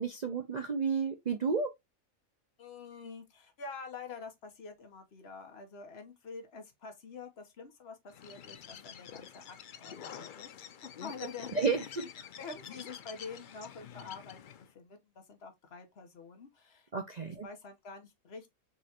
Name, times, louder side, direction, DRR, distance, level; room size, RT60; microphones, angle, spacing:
voice 1, 0.0-1.7 11.6-11.8 16.9-17.5, right 5 dB, 45° right, 0.5 m, -31 dB
voice 2, 2.6-10.5 11.0-11.7 12.0-12.1 12.4-16.9 17.4-18.5, left 4 dB, 50° left, 1.2 m, -47 dB
Bird, 8.1-14.7, left 9 dB, 80° left, 0.4 m, -47 dB
5.5 x 3.1 x 2.9 m
omnidirectional pair, 1.5 m